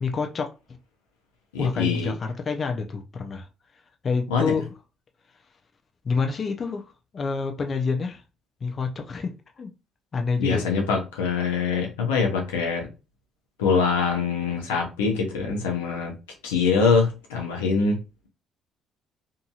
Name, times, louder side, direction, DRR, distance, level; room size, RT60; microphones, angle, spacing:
voice 1, 0.0-0.5 1.6-3.5 4.0-4.6 6.0-6.8 7.1-8.2 8.6-9.7 10.1-10.7, left 4 dB, 45° left, 0.5 m, -27 dB
voice 2, 1.5-2.1 4.3-4.5 10.4-12.9 13.6-16.1 16.4-18.0, left 5 dB, 90° left, 0.7 m, -24 dB
2.8 x 2.6 x 2.4 m
hypercardioid pair, 55°, 0 cm